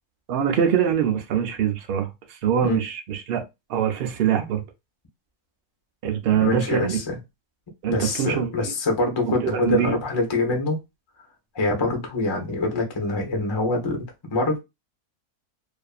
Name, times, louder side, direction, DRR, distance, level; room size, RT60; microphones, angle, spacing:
voice 1, 0.3-3.4 3.7-4.6 6.0-7.0 7.8-8.5 9.5-10.0, right 8 dB, 85° right, 0.5 m, -23 dB
voice 2, 6.4-7.2 7.9-10.8 11.5-14.6, left 2 dB, 35° left, 0.4 m, -25 dB
2.5 x 2.5 x 2.4 m
omnidirectional pair, 1.6 m